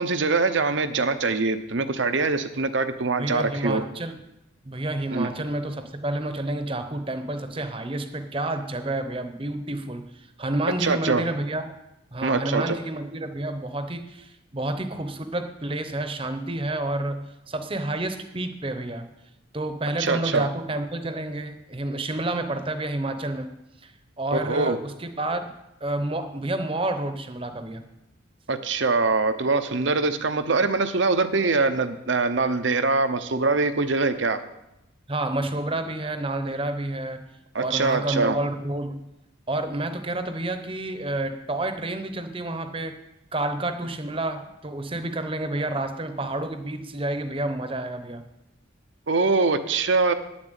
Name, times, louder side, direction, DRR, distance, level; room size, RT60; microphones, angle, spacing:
voice 1, 0.0-3.8 5.1-5.3 10.8-11.2 12.2-12.8 20.0-20.5 24.3-24.8 28.5-34.4 37.5-38.4 49.1-50.1, right 3 dB, 70° right, 10 dB, 0.8 m, -23 dB
voice 2, 3.2-4.2 4.6-11.7 12.1-19.1 19.5-23.6 23.8-23.9 24.2-25.5 25.8-27.8 35.1-37.2 37.6-39.1 39.5-43.0 43.3-48.2, right 2 dB, 25° right, 8 dB, 0.9 m, -29 dB
9.6 x 7.4 x 8.2 m, 0.90 s
head